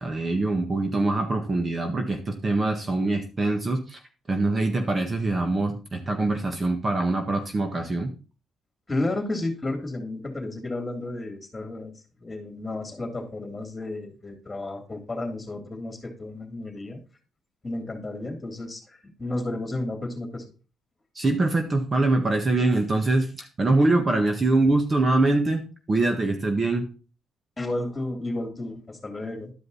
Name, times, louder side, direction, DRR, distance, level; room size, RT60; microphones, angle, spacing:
voice 1, 0.0-4.0 4.3-8.1 21.1-26.9, right 2 dB, 30° right, 4 dB, 1.5 m, -24 dB
voice 2, 8.9-11.9 12.2-17.0 17.6-20.4 27.6-29.5, left 2 dB, 20° left, 4 dB, 3.2 m, -32 dB
12.0 x 5.2 x 4.1 m, 0.35 s
cardioid pair, 90°, 0 cm